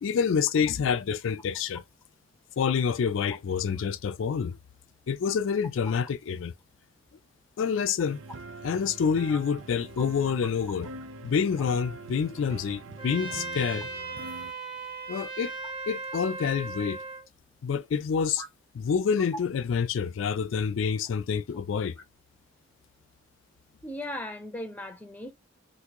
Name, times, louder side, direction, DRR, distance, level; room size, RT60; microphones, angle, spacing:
voice 1, 0.0-1.8 2.6-4.6 5.1-6.5 7.6-8.2 8.6-10.9 11.2-13.9 15.1-15.5 15.9-17.0 17.6-18.4 18.7-22.0, left 6 dB, 85° left, 0.4 m, -27 dB
sound 1, 8.0-14.5, right 3 dB, 90° right, 0.5 m, -44 dB
Trumpet, 13.0-17.3, right 3 dB, 30° right, 1.4 m, -37 dB
voice 2, 23.8-25.3, equal, 10° left, 0.8 m, -37 dB
3.5 x 2.6 x 2.9 m
head